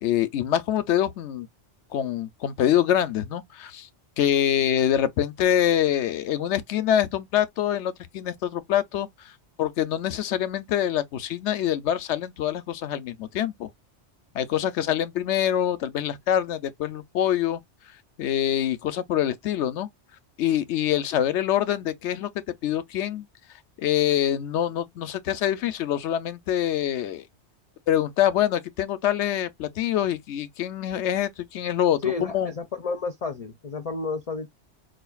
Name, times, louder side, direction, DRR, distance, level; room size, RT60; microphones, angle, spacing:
voice 1, 0.0-1.5 1.9-3.9 4.2-9.3 9.6-13.7 14.3-17.6 18.2-19.9 20.4-22.3 22.6-23.3 23.8-27.2 27.9-32.5, left 10 dB, 85° left, 0.9 m, -25 dB
voice 2, 32.0-34.5, left 4 dB, 45° left, 0.5 m, -31 dB
5.0 x 2.5 x 2.3 m
omnidirectional pair, 1.2 m